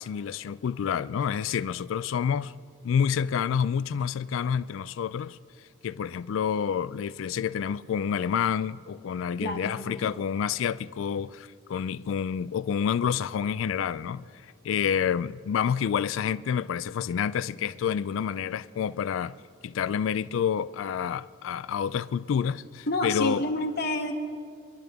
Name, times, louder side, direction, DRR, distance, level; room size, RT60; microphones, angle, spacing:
voice 1, 0.0-2.5 2.8-5.4 5.8-14.3 14.6-19.4 19.6-23.4, left 7 dB, 75° left, 0.3 m, -28 dB
voice 2, 9.4-10.0 22.9-24.1, left 1 dB, 50° left, 1.0 m, -29 dB
24.5 x 12.0 x 3.5 m
head